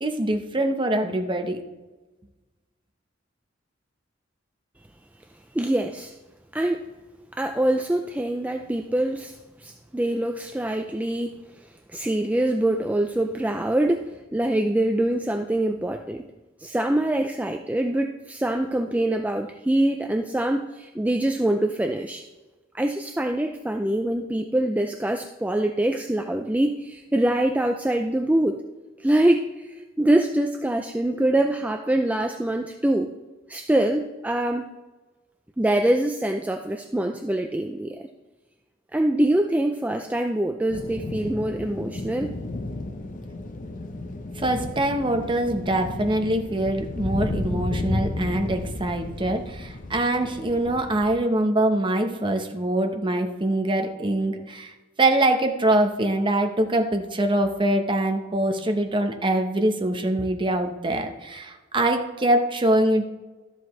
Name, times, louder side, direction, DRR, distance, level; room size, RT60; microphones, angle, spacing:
voice 1, 0.0-1.6 44.4-54.7 55.0-63.1, right 1 dB, 25° right, 5 dB, 0.9 m, -24 dB
voice 2, 5.5-6.1 6.5-6.9 7.3-11.4 11.9-16.2 16.6-22.2 22.7-28.6 29.0-33.1 33.5-34.7 35.6-38.1 38.9-42.3, right 1 dB, 10° right, 4 dB, 0.4 m, -24 dB
sound 1, 40.7-51.2, left 2 dB, 40° left, 0.7 m, -33 dB
13.0 x 7.6 x 3.2 m, 1.2 s
head